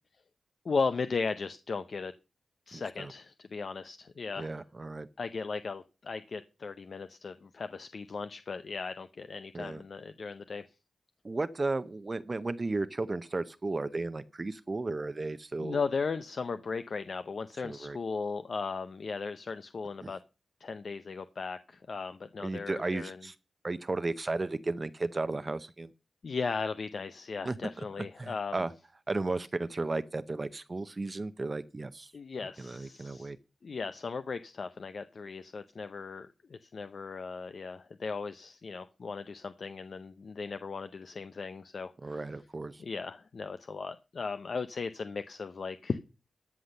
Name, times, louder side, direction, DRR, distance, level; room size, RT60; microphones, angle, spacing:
voice 1, 0.6-2.1 2.7-4.5 5.2-10.6 15.6-20.2 20.6-23.2 26.2-28.6 32.1-33.3 33.6-42.2 42.8-46.0, left 4 dB, 60° left, 0.6 m, -37 dB
voice 2, 2.7-3.1 4.4-5.1 9.5-9.8 11.2-15.8 17.6-18.0 20.0-20.1 22.4-23.3 23.6-25.9 27.4-27.6 28.0-28.7 29.1-32.1 32.4-33.4 42.0-42.8, right 3 dB, 35° right, 0.7 m, -34 dB
13.5 x 5.9 x 6.5 m
cardioid pair, 75°, 0 cm